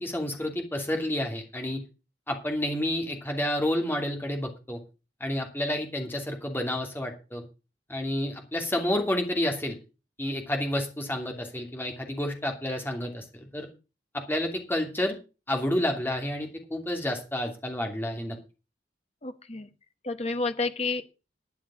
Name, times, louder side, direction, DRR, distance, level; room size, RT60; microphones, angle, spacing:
voice 1, 0.0-1.8 2.3-4.8 5.2-7.4 7.9-9.8 10.2-13.7 14.3-15.2 15.5-18.4, left 1 dB, 10° left, 3 dB, 2.8 m, -30 dB
voice 2, 19.2-19.7 20.0-21.0, left 3 dB, 35° left, 10 dB, 1.2 m, -30 dB
12.5 x 9.3 x 5.0 m, 0.31 s
head